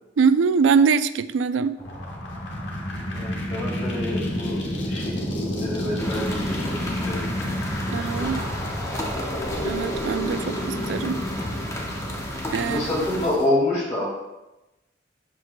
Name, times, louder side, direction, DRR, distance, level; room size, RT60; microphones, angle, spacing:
voice 1, 0.2-1.8 7.9-8.4 9.6-11.2 12.5-12.9, right 5 dB, 75° right, 14 dB, 0.3 m, -22 dB
sound 1, 1.8-13.4, equal, 75° left, 1.3 m, -30 dB
voice 2, 3.1-4.6 4.9-5.2 5.6-7.3 7.9-8.5 12.6-14.1, left 1 dB, 40° left, -5 dB, 2.3 m, -28 dB
sound 2, 6.0-13.3, left 1 dB, 15° left, 0.8 m, -33 dB
11.5 x 4.7 x 2.2 m, 1.0 s
head